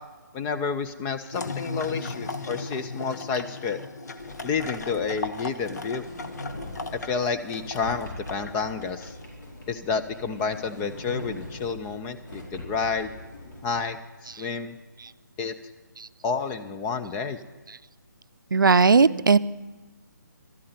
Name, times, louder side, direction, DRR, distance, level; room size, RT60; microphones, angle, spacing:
voice 1, 0.3-3.8 4.4-6.0 6.9-9.1 9.7-13.1 13.6-14.0 14.2-14.8 15.4-15.5 16.2-17.4, left 5 dB, 10° left, 8 dB, 0.4 m, -30 dB
sound 1, 1.3-9.2, left 3 dB, 55° left, 1.1 m, -37 dB
Sliding door, 4.2-13.8, left 1 dB, 70° left, 4.7 m, -42 dB
voice 2, 18.5-19.4, right 4 dB, 85° right, 15 dB, 0.5 m, -17 dB
12.5 x 8.4 x 9.4 m, 1.2 s
figure-of-eight pair, 155°, 11 cm